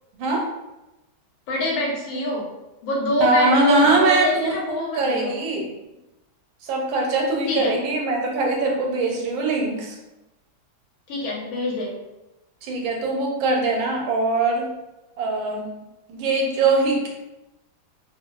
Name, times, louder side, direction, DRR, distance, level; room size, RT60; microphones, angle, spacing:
voice 1, 1.5-2.5 2.8-5.4 7.5-7.8 11.1-11.9, left 1 dB, 85° left, -3 dB, 1.6 m, -25 dB
voice 2, 3.2-5.7 6.6-10.0 12.6-14.7 15.2-15.7 16.1-17.1, right 2 dB, 90° right, 0 dB, 1.4 m, -22 dB
3.5 x 2.3 x 2.2 m, 0.99 s
omnidirectional pair, 2.1 m